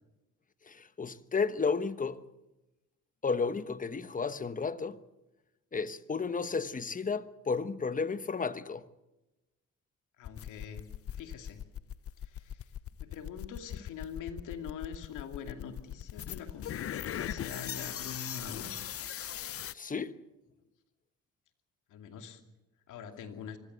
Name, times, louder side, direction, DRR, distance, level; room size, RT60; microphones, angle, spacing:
voice 1, 0.7-2.2 3.2-5.0 5.7-8.9 19.7-20.1, left 5 dB, 25° left, 1.1 m, -33 dB
voice 2, 10.2-10.9 11.1-11.6 12.2-12.6 13.1-18.7 21.9-22.4 22.9-23.6, left 7 dB, 85° left, 2.6 m, -44 dB
sound 1, 10.2-19.7, left 10 dB, 50° left, 0.7 m, -39 dB
25.0 x 16.0 x 8.1 m
cardioid pair, 90°, 30 cm